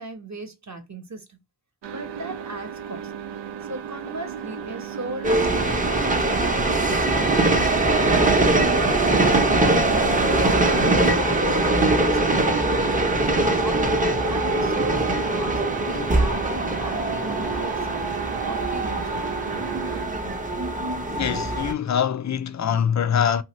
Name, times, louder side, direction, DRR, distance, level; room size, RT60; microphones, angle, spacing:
voice 1, 0.0-1.4 1.9-3.1 3.6-6.5 6.9-7.7 8.0-11.1 11.6-18.1 18.5-19.3, right 2 dB, 35° right, 1.1 m, -37 dB
sound 1, 1.8-20.1, right 8 dB, 65° right, 0.6 m, -34 dB
sound 2, 5.2-21.7, right 2 dB, 15° right, 0.7 m, -22 dB
voice 2, 21.1-23.4, left 8 dB, 40° left, 0.5 m, -24 dB
2.7 x 2.4 x 3.0 m
cardioid pair, 45°, 47 cm